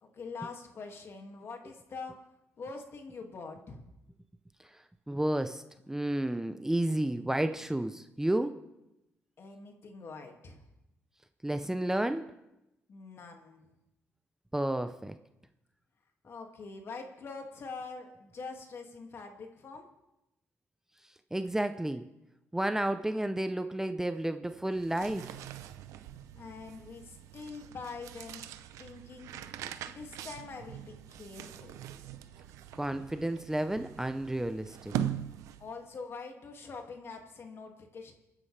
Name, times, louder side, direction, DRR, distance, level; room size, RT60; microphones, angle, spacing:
voice 1, 0.0-2.2 2.6-3.8 9.4-10.7 12.9-13.6 16.2-19.9 26.3-28.5 28.8-29.3 29.9-31.9 35.6-38.2, left 4 dB, 55° left, 2.3 m, -44 dB
voice 2, 4.6-8.6 11.4-12.3 14.5-15.2 21.3-22.1 22.5-25.4 32.7-34.9, right 1 dB, 10° right, 0.7 m, -32 dB
sound 1, 24.7-35.9, right 10 dB, 85° right, 0.7 m, -42 dB
29.0 x 9.9 x 3.4 m
cardioid pair, 75°, 5 cm